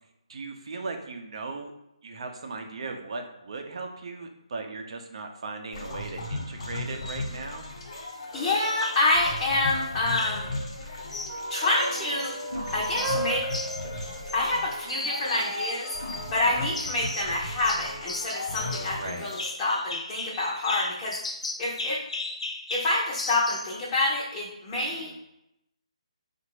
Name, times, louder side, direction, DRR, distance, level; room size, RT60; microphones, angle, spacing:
voice 1, 0.3-1.7 2.0-7.6 16.3-16.4 18.9-19.3 24.7-25.2, right 3 dB, 55° right, 4 dB, 0.7 m, -38 dB
sound 1, 5.7-19.5, left 2 dB, 50° left, 1.2 m, -36 dB
sound 2, 7.0-7.2 8.4-9.2 10.0-10.5 11.1-12.3 12.6-14.6 14.9-16.2 16.7-17.4 17.7-23.8, left 2 dB, 75° left, 0.7 m, -36 dB
voice 2, 8.3-10.5 11.5-12.3 12.7-13.4 14.3-15.9 16.3-21.2 21.6-22.0 22.7-25.1, left 2 dB, 25° left, -6 dB, 0.8 m, -27 dB
sound 3, 11.3-18.8, right 1 dB, 20° right, 0.7 m, -38 dB
4.0 x 2.5 x 4.6 m, 0.86 s
figure-of-eight pair, 155°, 4 cm